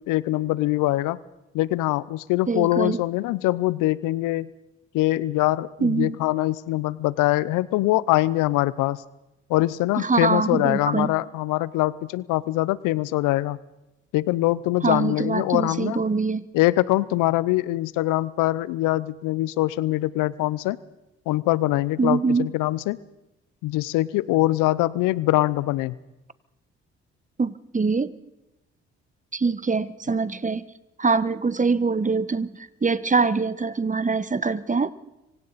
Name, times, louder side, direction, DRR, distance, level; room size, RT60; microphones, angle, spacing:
voice 1, 0.1-1.2 1.5-4.5 4.9-9.0 9.5-13.6 14.1-16.0 16.5-20.8 21.3-23.0 23.6-26.0, left 17 dB, 75° left, 20 dB, 0.8 m, -23 dB
voice 2, 2.5-3.0 5.8-6.2 10.0-11.1 14.8-16.4 22.0-22.5 27.4-28.1 29.3-30.6 31.0-32.5 32.8-34.9, right 4 dB, 25° right, 16 dB, 1.3 m, -23 dB
26.5 x 25.0 x 4.2 m, 0.95 s
hypercardioid pair, 50°, 32 cm